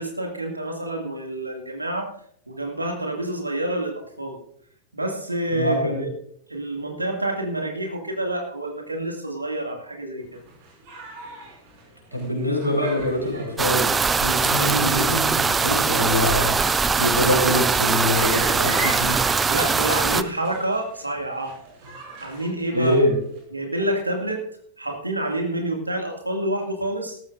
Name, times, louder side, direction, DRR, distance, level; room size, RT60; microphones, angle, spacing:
voice 1, 0.0-2.1 2.5-4.4 4.9-6.1 6.5-10.4 19.5-21.5 22.2-23.0 23.5-24.4 24.8-27.2, right 1 dB, 85° right, 3 dB, 2.3 m, -28 dB
voice 2, 5.5-6.0 12.1-13.9 14.2-16.5 17.0-19.2 22.7-23.1, left 1 dB, 85° left, 1 dB, 4.6 m, -24 dB
sound 1, 10.2-23.4, right 2 dB, 50° right, 6.3 m, -39 dB
sound 2, 13.6-20.2, right 5 dB, 15° right, 0.6 m, -21 dB
18.0 x 14.0 x 2.6 m, 0.65 s
figure-of-eight pair, 90°, 0 cm